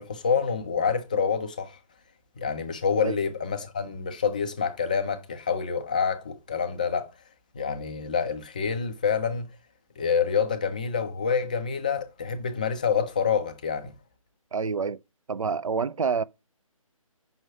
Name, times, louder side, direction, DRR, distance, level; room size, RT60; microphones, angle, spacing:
voice 1, 0.0-1.8 2.4-7.1 7.5-9.5 10.0-13.9, left 6 dB, 15° left, 0.3 m, -27 dB
voice 2, 14.5-15.0 15.3-16.2, right 5 dB, 70° right, 0.5 m, -27 dB
5.6 x 4.4 x 4.7 m
figure-of-eight pair, 145°, 18 cm